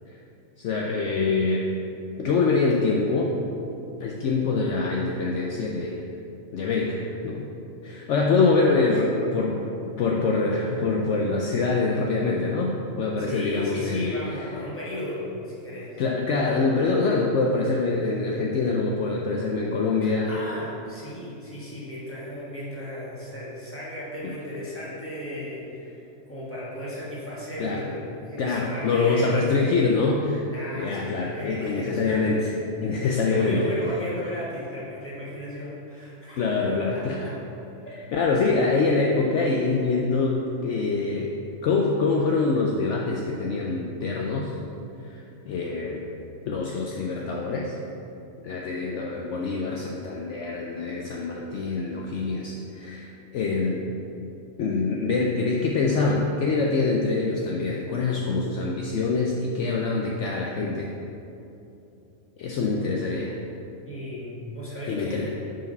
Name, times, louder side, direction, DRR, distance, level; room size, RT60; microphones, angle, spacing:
voice 1, 0.6-1.7 2.2-3.4 4.0-6.1 6.5-7.4 7.8-9.6 10.0-14.1 16.0-20.3 27.6-27.8 28.4-30.4 30.8-32.5 32.8-33.7 36.4-37.2 38.1-41.3 41.6-44.6 45.0-46.0 46.5-47.8 48.4-53.8 54.6-60.9 62.4-63.4 64.9-65.3, left 3 dB, 65° left, -1 dB, 0.9 m, -25 dB
voice 2, 13.2-16.0 20.0-29.4 30.5-32.4 32.8-36.4 36.6-37.4 37.8-38.0 63.8-65.4, left 1 dB, 10° left, -8 dB, 1.6 m, -35 dB
6.0 x 4.8 x 5.3 m, 2.8 s
omnidirectional pair, 1.4 m